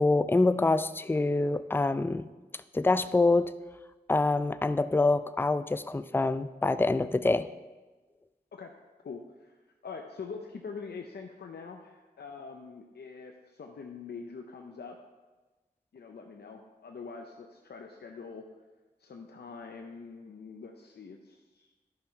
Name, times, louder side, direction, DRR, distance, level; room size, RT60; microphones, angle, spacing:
voice 1, 0.0-2.3 2.7-3.5 4.1-7.5, left 2 dB, 15° left, 13 dB, 0.4 m, -25 dB
voice 2, 9.0-15.0 15.9-18.5 19.0-21.7, left 5 dB, 85° left, 3 dB, 0.6 m, -44 dB
11.0 x 5.6 x 4.4 m, 1.2 s
cardioid pair, 50°, 17 cm